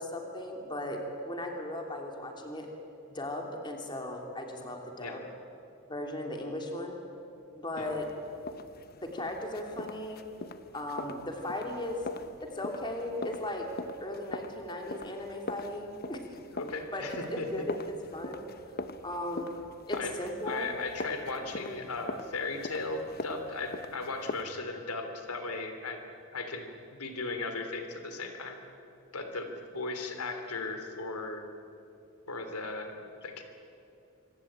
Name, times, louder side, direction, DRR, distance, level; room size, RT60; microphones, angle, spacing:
voice 1, 0.0-2.7 3.1-5.2 5.9-7.0 7.6-8.1 9.0-10.2 10.7-12.0 12.4-13.7 14.0-16.2 16.9-18.4 19.0-20.7 21.1-21.7, left 1 dB, 20° left, 2 dB, 3.2 m, -37 dB
sound 1, 7.8-24.4, left 2 dB, 45° left, 0.9 m, -43 dB
voice 2, 16.5-17.7 19.9-20.1 20.5-26.0 26.3-28.6 29.1-31.4 32.3-33.0 33.2-33.4, left 3 dB, 85° left, 6 dB, 3.2 m, -37 dB
26.0 x 25.0 x 8.9 m, 2.7 s
head